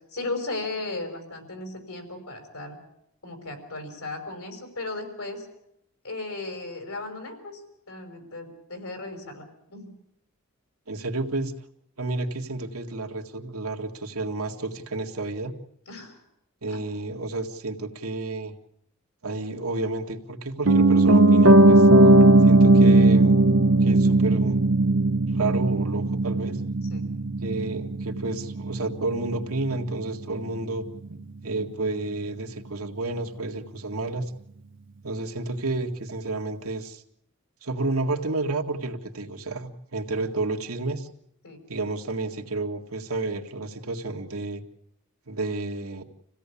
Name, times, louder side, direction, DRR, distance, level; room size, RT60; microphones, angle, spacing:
voice 1, 0.1-2.8 3.2-5.5 6.0-7.6 7.9-9.9 15.9-16.2 16.7-16.8 26.9-27.0 41.4-41.6, left 2 dB, 90° left, 5 dB, 5.6 m, -36 dB
voice 2, 10.9-11.5 12.0-15.6 16.6-18.5 19.2-21.9 22.4-23.5 23.8-24.6 25.3-26.6 27.4-34.3 35.0-37.0 37.6-41.1 41.7-44.6 45.3-46.0, right 2 dB, 85° right, 4 dB, 2.0 m, -31 dB
Piano, 20.7-30.7 31.0-31.1, right 2 dB, 60° right, 1.0 m, -18 dB
27.0 x 16.5 x 8.5 m, 0.79 s
head